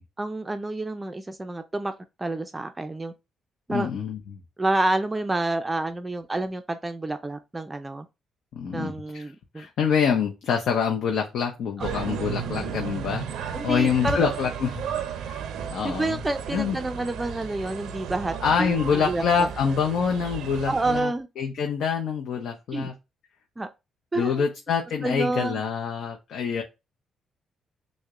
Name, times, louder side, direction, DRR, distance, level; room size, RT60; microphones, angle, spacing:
voice 1, 0.2-1.9 2.2-3.1 3.7-3.9 4.6-8.1 8.7-9.7 13.5-14.3 15.8-19.5 20.7-21.3 22.7-22.9 23.6-23.7 24.1-24.5 25.0-25.6, right 2 dB, 20° right, 0.4 m, -28 dB
voice 2, 3.7-4.4 8.5-9.3 9.5-14.8 15.2-15.4 15.7-16.2 16.5-16.8 18.4-22.9 24.2-26.6, left 6 dB, 70° left, 0.6 m, -26 dB
sound 1, 11.8-21.0, right 8 dB, 80° right, 0.5 m, -34 dB
6.3 x 2.1 x 2.3 m
cardioid pair, 90°, 0 cm